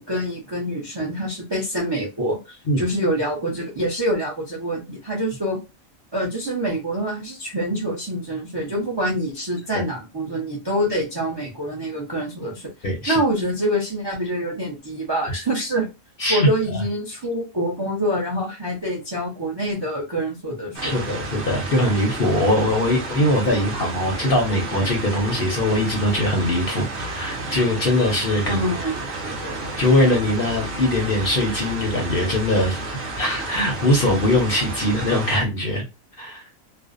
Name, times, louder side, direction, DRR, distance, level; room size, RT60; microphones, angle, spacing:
voice 1, 0.0-5.6 6.1-12.7 13.1-15.9 16.3-21.0 28.5-29.6, equal, 40° right, -2 dB, 0.3 m, -26 dB
voice 2, 12.8-13.2 15.3-15.4 16.2-16.5 20.8-28.6 29.8-32.8 33.2-35.8 36.2-36.4, left 1 dB, 55° left, 1 dB, 0.7 m, -21 dB
sound 1, 20.7-35.4, right 2 dB, 60° right, 0.8 m, -31 dB
2.5 x 2.0 x 2.4 m, 0.26 s
omnidirectional pair, 1.4 m